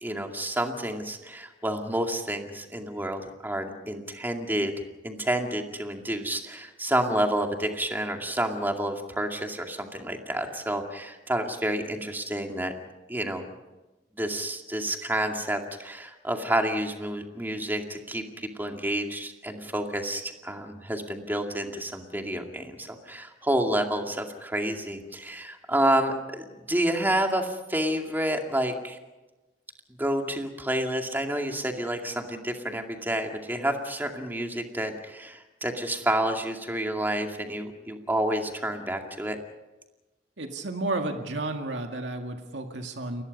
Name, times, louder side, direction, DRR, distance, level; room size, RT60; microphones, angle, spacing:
voice 1, 0.0-4.7 5.0-12.7 13.1-13.4 14.1-29.0 30.0-39.4, right 1 dB, 10° right, 3 dB, 2.3 m, -29 dB
voice 2, 40.4-43.2, right 2 dB, 85° right, 4 dB, 2.0 m, -32 dB
29.5 x 20.5 x 5.4 m, 1.1 s
head